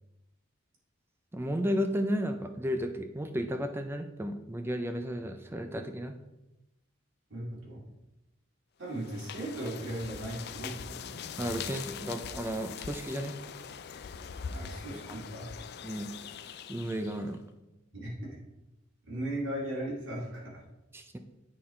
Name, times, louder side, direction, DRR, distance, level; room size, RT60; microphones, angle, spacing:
voice 1, 1.3-6.2 11.4-13.3 14.9-15.0 15.8-16.1 16.7-17.4 20.9-21.2, equal, 10° right, 7 dB, 0.4 m, -33 dB
voice 2, 7.3-7.8 8.8-11.1 14.5-15.5 18.0-18.4 19.0-20.6, right 1 dB, 80° right, -5 dB, 2.3 m, -37 dB
sound 1, 8.9-17.3, left 7 dB, 55° left, 0.4 m, -42 dB
8.5 x 3.9 x 4.3 m, 0.96 s
head